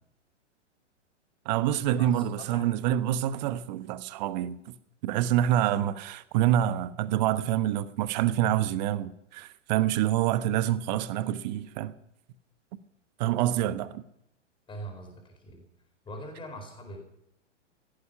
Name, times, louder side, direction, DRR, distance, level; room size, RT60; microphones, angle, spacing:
voice 1, 1.4-4.7 5.0-11.9 13.2-14.0, right 12 dB, 35° right, 1.0 m, -27 dB
voice 2, 2.0-2.8 13.6-13.8 14.7-15.6 16.0-17.0, right 1 dB, 15° left, 4.6 m, -43 dB
17.0 x 14.0 x 5.8 m
figure-of-eight pair, 110°, 37 cm